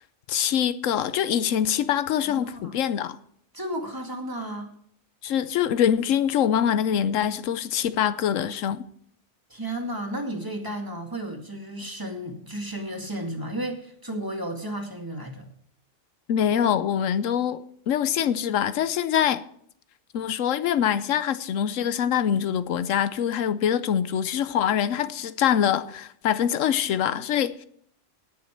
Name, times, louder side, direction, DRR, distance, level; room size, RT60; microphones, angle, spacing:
voice 1, 0.3-3.2 5.2-8.8 16.3-17.6 17.9-19.4 20.1-27.7, left 9 dB, 85° left, 1.1 m, -24 dB
voice 2, 2.3-2.8 3.5-4.7 9.5-15.5, right 1 dB, 15° right, 2.1 m, -33 dB
18.5 x 7.1 x 4.5 m
omnidirectional pair, 1.3 m